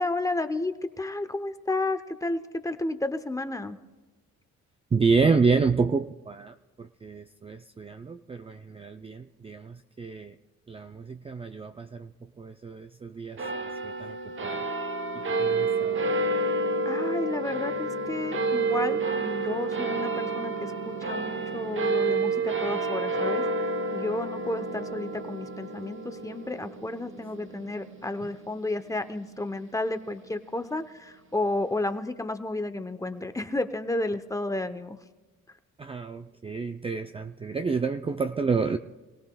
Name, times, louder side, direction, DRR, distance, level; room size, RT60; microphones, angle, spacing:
voice 1, 0.0-3.8 16.8-35.0, left 2 dB, 10° left, 9 dB, 0.8 m, -32 dB
voice 2, 4.9-10.3 10.7-12.1 12.4-13.4 13.8-14.2 14.4-14.6 15.1-16.0 35.8-38.8, right 4 dB, 20° right, 7 dB, 0.4 m, -29 dB
sound 1, 13.4-30.1, right 3 dB, 40° right, 1.0 m, -30 dB
26.5 x 17.0 x 2.3 m, 1.2 s
cardioid pair, 90°, 30 cm